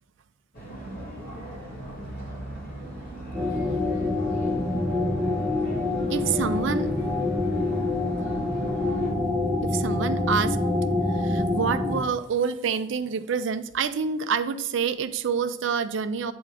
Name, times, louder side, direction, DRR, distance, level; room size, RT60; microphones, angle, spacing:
sound 1, 0.5-9.1, right 1 dB, 45° left, 2.6 m, -38 dB
sound 2, 3.3-12.0, left 2 dB, 5° left, 0.9 m, -26 dB
voice 1, 6.1-6.9 9.6-10.6 11.1-16.3, right 6 dB, 65° right, 11 dB, 0.4 m, -27 dB
8.6 x 3.5 x 4.9 m, 0.90 s
head